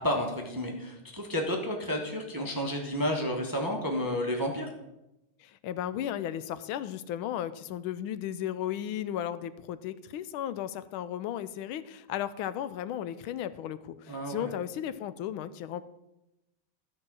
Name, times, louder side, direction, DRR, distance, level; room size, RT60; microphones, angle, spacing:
voice 1, 0.0-4.7 14.1-14.5, equal, 15° right, 1 dB, 0.7 m, -31 dB
voice 2, 5.4-15.8, left 11 dB, 85° left, 14 dB, 1.4 m, -35 dB
13.0 x 4.6 x 6.1 m, 0.93 s
omnidirectional pair, 2.2 m